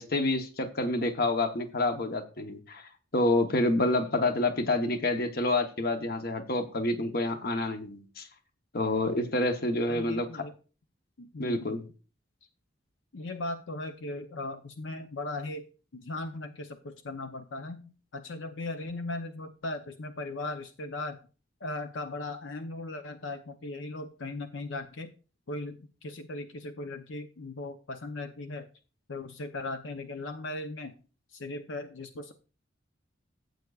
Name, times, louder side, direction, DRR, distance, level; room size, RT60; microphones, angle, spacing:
voice 1, 0.0-8.3 8.7-10.5 11.4-11.8, left 2 dB, 50° left, 7 dB, 1.0 m, -28 dB
voice 2, 9.9-10.5 11.2-11.7 13.1-15.6 15.9-21.2 21.6-25.1 25.5-28.7 29.1-30.9 31.3-32.3, left 2 dB, 75° left, 6 dB, 0.7 m, -38 dB
14.0 x 7.9 x 2.4 m, 0.35 s
head